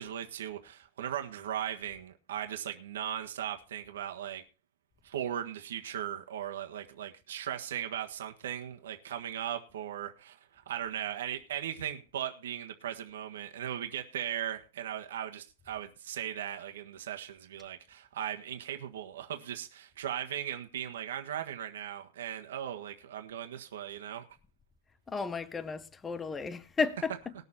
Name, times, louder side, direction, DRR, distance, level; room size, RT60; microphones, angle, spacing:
voice 1, 0.0-4.4 5.0-24.3, right 10 dB, 80° right, 1.5 m, -38 dB
voice 2, 25.1-27.3, left 4 dB, 10° left, 0.6 m, -33 dB
19.5 x 6.8 x 4.2 m
supercardioid pair, 180°, 0 cm